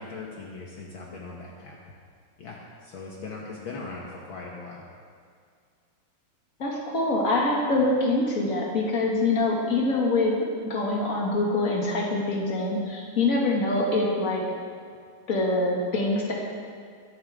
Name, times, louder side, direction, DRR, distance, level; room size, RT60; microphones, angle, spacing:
voice 1, 0.0-1.8 2.4-4.8, left 3 dB, 65° left, -3 dB, 1.2 m, -39 dB
voice 2, 6.6-14.4 15.3-16.3, left 2 dB, 30° left, -2 dB, 1.7 m, -25 dB
22.5 x 11.5 x 3.7 m, 2.2 s
omnidirectional pair, 4.4 m